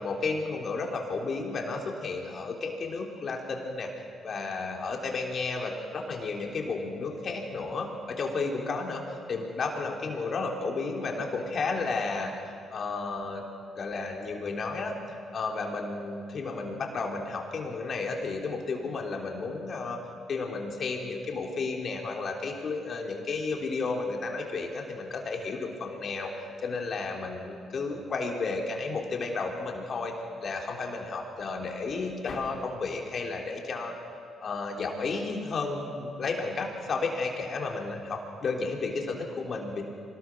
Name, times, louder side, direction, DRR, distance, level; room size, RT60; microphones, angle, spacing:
voice 1, 0.0-3.9 4.2-7.9 8.2-12.3 12.7-13.4 13.7-15.0 15.3-20.0 20.3-30.1 30.4-34.0 34.4-39.8, left 3 dB, 50° left, 1 dB, 3.5 m, -32 dB
25.0 x 19.5 x 6.2 m, 2.4 s
cardioid pair, 90°, 0 cm